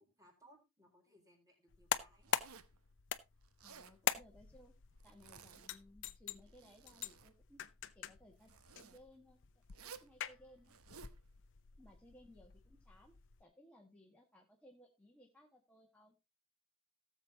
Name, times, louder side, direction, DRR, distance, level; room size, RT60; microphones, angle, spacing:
voice 1, 0.0-2.3, equal, 15° right, 2 dB, 4.1 m, -66 dB
sound 1, 1.7-13.4, left 8 dB, 60° left, 0.7 m, -44 dB
Zipper (clothing), 2.2-2.8 3.4-4.0 5.0-5.7 6.3-7.3 8.4-9.0 9.7-10.1 10.6-11.2, right 6 dB, 85° right, 0.9 m, -57 dB
voice 2, 3.6-4.7 5.0-7.6 7.9-9.4 9.8-10.8 11.8-13.1 13.4-16.2, left 1 dB, 5° left, 0 dB, 1.6 m, -62 dB
17.5 x 7.3 x 2.8 m, 0.24 s
head